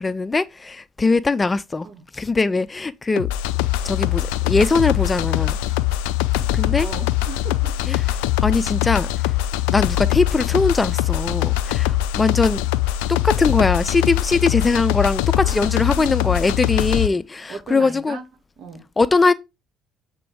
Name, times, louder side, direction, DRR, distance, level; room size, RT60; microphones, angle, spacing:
voice 1, 0.0-1.9 2.1-3.3 3.8-5.6 6.5-6.9 7.9-8.0 8.4-9.1 9.7-12.6 13.2-18.2 19.0-19.3, left 3 dB, 25° left, 0.6 m, -21 dB
sound 1, 3.2-17.1, left 14 dB, 70° left, 0.4 m, -22 dB
voice 2, 6.8-7.8 15.4-17.0 17.5-18.2 18.6-18.9, right 4 dB, 55° right, 1.8 m, -37 dB
7.7 x 4.5 x 4.7 m
figure-of-eight pair, 50°, 0 cm